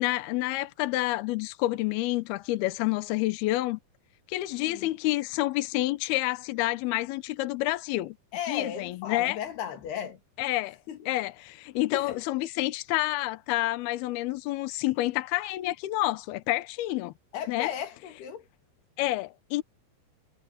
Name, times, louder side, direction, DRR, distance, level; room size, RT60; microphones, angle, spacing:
voice 1, 0.0-3.8 4.3-8.2 8.5-9.4 10.4-10.8 11.1-17.1 17.5-17.7 19.0-19.6, left 17 dB, 80° left, 2.3 m, -28 dB
voice 2, 8.3-10.2 10.9-11.1 11.9-12.2 17.3-18.4, left 9 dB, 60° left, 4.1 m, -36 dB
omnidirectional pair, 5.4 m